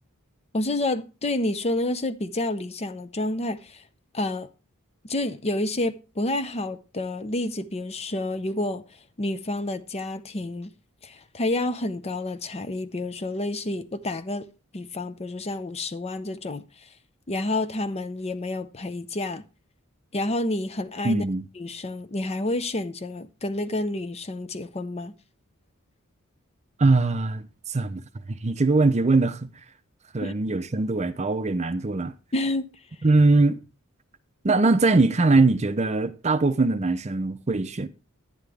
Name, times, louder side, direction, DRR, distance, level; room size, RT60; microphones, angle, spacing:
voice 1, 0.5-3.8 4.1-4.5 5.0-8.8 9.2-10.7 11.0-14.5 14.7-16.9 17.3-19.4 20.1-21.2 21.6-25.1 30.2-30.3 32.3-32.7, left 2 dB, 30° left, 0.7 m, -29 dB
voice 2, 21.0-21.4 26.8-28.0 28.3-29.5 30.1-32.1 33.0-33.6 34.4-37.9, right 3 dB, 30° right, 0.6 m, -21 dB
11.0 x 9.6 x 3.4 m
head